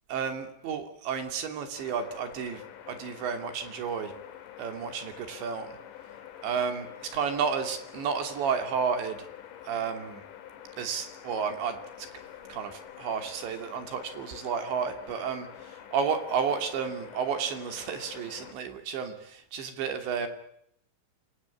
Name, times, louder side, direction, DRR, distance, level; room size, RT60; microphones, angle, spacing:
voice 1, 0.1-4.1 4.6-5.8 6.4-9.3 9.6-10.2 10.8-12.1 12.5-20.3, right 6 dB, 70° right, 7 dB, 5.0 m, -32 dB
sound 1, 1.8-18.5, left 10 dB, 55° left, 2.7 m, -47 dB
28.0 x 25.0 x 8.4 m, 0.74 s
omnidirectional pair, 5.5 m